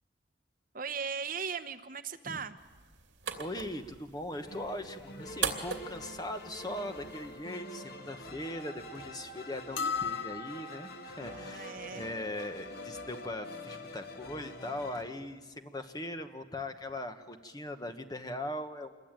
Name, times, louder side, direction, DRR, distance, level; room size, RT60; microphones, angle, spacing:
voice 1, 0.7-2.5 11.3-12.1, right 6 dB, 50° right, 10 dB, 1.0 m, -38 dB
sound 1, 2.6-7.6, right 6 dB, 70° right, 2.8 m, -40 dB
voice 2, 3.4-18.9, left 1 dB, 20° left, 7 dB, 1.4 m, -40 dB
sound 2, 4.3-15.0, left 1 dB, 55° left, 2.4 m, -46 dB
sound 3, 9.8-11.1, left 6 dB, 80° left, 0.8 m, -35 dB
27.0 x 22.0 x 9.1 m, 1.4 s
head